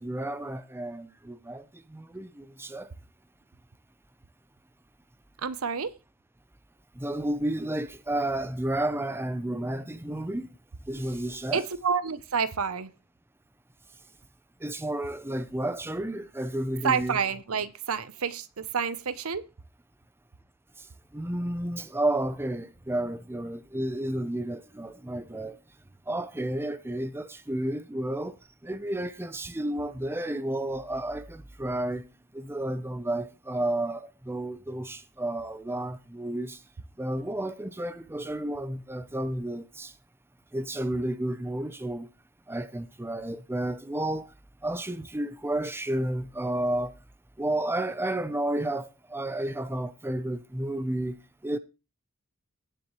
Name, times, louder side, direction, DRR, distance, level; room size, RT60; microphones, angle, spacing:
voice 1, 0.0-2.9 6.9-10.5 10.9-11.6 14.6-17.2 20.8-20.9 21.1-25.6 26.1-28.4 28.6-32.1 32.3-36.6 37.0-39.9 40.5-42.1 42.5-44.3 44.6-46.9 47.4-51.6, right 1 dB, 10° right, 0.7 m, -31 dB
voice 2, 5.4-5.9 11.5-12.9 16.8-19.4, right 6 dB, 80° right, 0.8 m, -29 dB
17.0 x 6.9 x 3.2 m
head